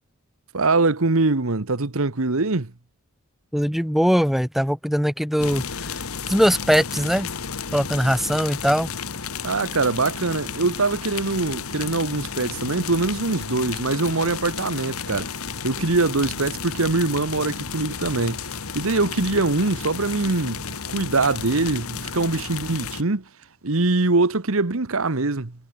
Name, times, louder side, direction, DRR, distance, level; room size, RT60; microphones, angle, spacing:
voice 1, 0.5-2.7 9.4-15.3 15.6-18.4 18.7-20.6 20.9-23.2 23.6-25.5, right 3 dB, 65° right, 1.3 m, -23 dB
voice 2, 3.5-6.0 6.3-7.3 7.7-8.9, equal, ahead, 2.1 m, -21 dB
sound 1, 5.4-23.0, left 6 dB, 70° left, 1.7 m, -33 dB
head